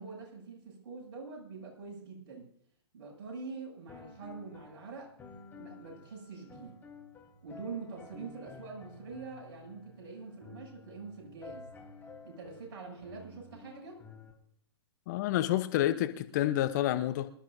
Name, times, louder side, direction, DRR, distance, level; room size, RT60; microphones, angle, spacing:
voice 1, 0.0-2.5 2.9-5.1 5.6-6.8 7.4-11.7 12.2-14.0, right 4 dB, 50° right, -2 dB, 7.4 m, -45 dB
sound 1, 3.9-14.3, left 4 dB, 15° left, 3.5 m, -52 dB
voice 2, 15.1-17.3, left 13 dB, 40° left, 11 dB, 0.9 m, -29 dB
26.0 x 13.0 x 2.7 m, 0.64 s
figure-of-eight pair, 120°, 14 cm